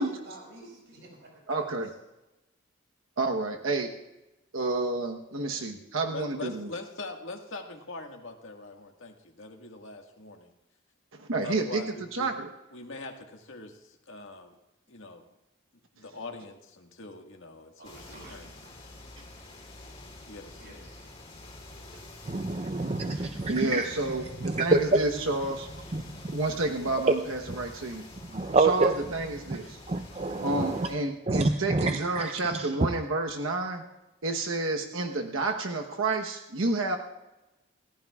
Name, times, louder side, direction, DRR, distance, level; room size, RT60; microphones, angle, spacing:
voice 1, 0.0-1.6 17.8-18.4 20.6-21.2, right 2 dB, 60° right, -2 dB, 6.4 m, -50 dB
voice 2, 1.5-1.9 3.2-3.9 4.5-6.7 11.1-11.8 12.1-12.5 23.5-25.7 26.3-28.0 28.6-29.8 30.4-33.8 34.2-37.0, right 2 dB, 85° right, 3 dB, 1.1 m, -30 dB
voice 3, 6.1-10.5 11.4-12.3 12.7-14.6 14.9-15.2 15.9-18.5 20.3-20.7, left 3 dB, 80° left, 2 dB, 1.7 m, -42 dB
sound 1, 17.8-30.9, left 2 dB, 25° left, 4.1 m, -47 dB
voice 4, 22.2-23.9 24.4-25.0 25.9-26.4 27.0-27.1 28.3-28.9 29.5-29.6 29.9-30.9 31.3-32.7, right 3 dB, 30° right, 6 dB, 0.6 m, -27 dB
28.0 x 15.0 x 2.4 m, 1.0 s
head